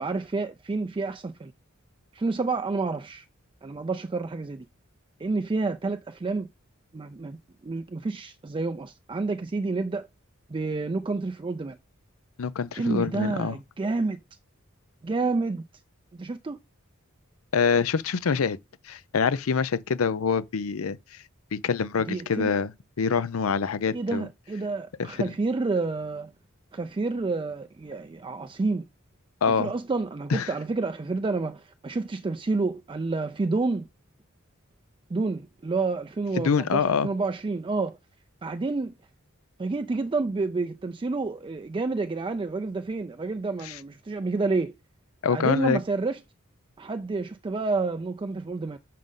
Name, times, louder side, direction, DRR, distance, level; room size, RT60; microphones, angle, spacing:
voice 1, 0.0-1.5 2.1-3.2 3.6-4.6 5.2-6.5 6.9-7.4 7.6-10.1 10.5-11.8 12.7-14.2 15.0-15.6 16.1-16.6 22.1-22.5 23.9-26.3 26.7-28.9 29.5-33.9 35.1-38.0 38.4-38.9 39.6-44.7 45.3-46.2 46.8-48.8, right 3 dB, 25° right, 0.4 m, -29 dB
voice 2, 12.4-13.6 17.5-18.6 18.8-21.2 21.5-24.3 25.0-25.3 29.4-29.7 30.3-30.5 36.4-37.1 43.6-43.8 45.2-45.8, left 6 dB, 90° left, 0.5 m, -25 dB
7.4 x 5.3 x 3.7 m
head